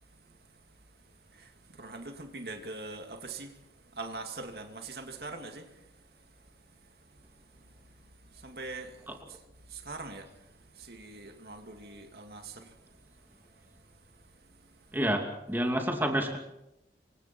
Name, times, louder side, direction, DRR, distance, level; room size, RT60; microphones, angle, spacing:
voice 1, 1.3-3.6 3.9-6.0 8.3-9.0 9.3-9.4 9.7-10.3 10.7-12.8 14.8-14.9, right 3 dB, 60° right, 2.5 m, -42 dB
voice 2, 14.9-16.4, right 1 dB, 10° right, 2.7 m, -29 dB
27.0 x 24.5 x 4.5 m
head